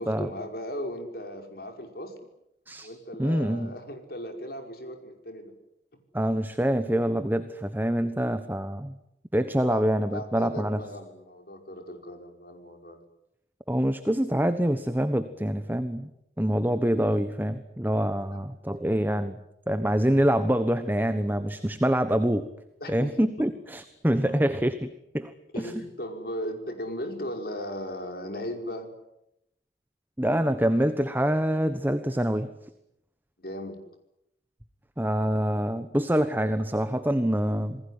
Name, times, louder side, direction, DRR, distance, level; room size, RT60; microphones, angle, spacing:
voice 1, 0.0-2.2 2.8-5.6 9.6-9.8 10.1-13.0 18.3-18.4 22.8-23.1 23.4-23.5 25.5-28.9 33.4-33.8, equal, 55° left, 6 dB, 5.3 m, -37 dB
voice 2, 3.2-3.7 6.1-8.9 9.3-10.8 13.7-16.1 16.4-19.4 19.7-22.5 22.9-24.9 25.1-25.7 30.2-32.5 35.0-37.8, equal, 10° right, 10 dB, 1.2 m, -25 dB
28.0 x 20.0 x 9.9 m, 0.82 s
head